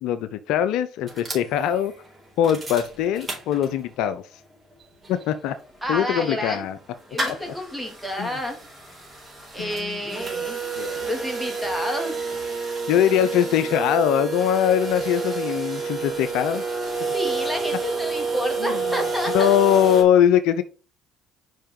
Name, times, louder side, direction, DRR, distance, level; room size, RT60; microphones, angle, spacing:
voice 1, 0.0-1.9 2.4-4.2 5.1-5.6 5.9-6.8 7.3-7.5 8.2-8.3 9.6-10.0 10.8-11.1 12.9-16.6 17.0-17.1 18.6-18.8 19.3-20.6, left 10 dB, 70° left, 12 dB, 0.5 m, -22 dB
sound 1, 1.1-4.0 4.4-4.5 4.7-20.0, right 4 dB, 25° right, 4.0 m, -30 dB
voice 2, 5.8-6.6 7.1-8.6 9.5-10.6 11.0-12.3 17.1-19.6, equal, ahead, 3 dB, 3.2 m, -30 dB
5.5 x 5.5 x 5.3 m, 0.36 s
hypercardioid pair, 60°, 0 cm